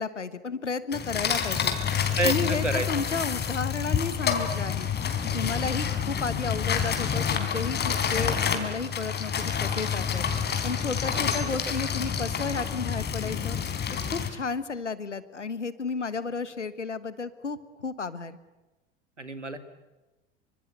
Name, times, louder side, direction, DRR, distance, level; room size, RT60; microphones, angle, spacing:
voice 1, 0.0-1.8 2.2-4.9 5.3-10.3 10.6-13.6 14.1-18.4, left 4 dB, 85° left, 15 dB, 1.4 m, -32 dB
sound 1, 0.9-14.3, left 7 dB, 30° left, 3.9 m, -28 dB
voice 2, 2.2-2.9 11.3-11.4 19.2-19.6, right 2 dB, 90° right, 11 dB, 2.1 m, -29 dB
27.0 x 25.0 x 8.2 m, 1.1 s
figure-of-eight pair, 75°, 35 cm